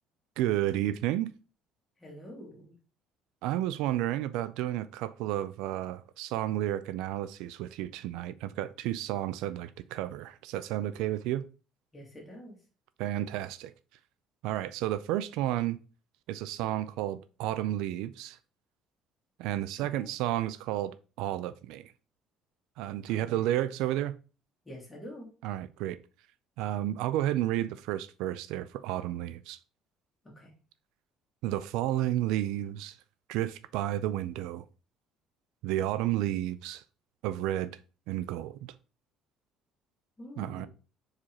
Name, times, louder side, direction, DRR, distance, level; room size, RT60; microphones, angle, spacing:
voice 1, 0.4-1.3 3.4-11.5 13.0-13.7 14.4-15.8 16.3-18.4 19.4-21.9 22.8-24.2 25.4-26.0 26.6-29.6 31.4-33.0 33.3-34.6 35.6-36.8 37.2-37.7 38.1-38.7 40.4-40.7, right 13 dB, 85° right, 0.4 m, -31 dB
voice 2, 2.0-2.7 11.9-12.6 19.8-20.1 23.1-23.7 24.6-25.3 30.2-30.5 40.2-40.7, equal, 15° left, 2.4 m, -46 dB
4.8 x 4.3 x 4.7 m
cardioid pair, 145°, 0 cm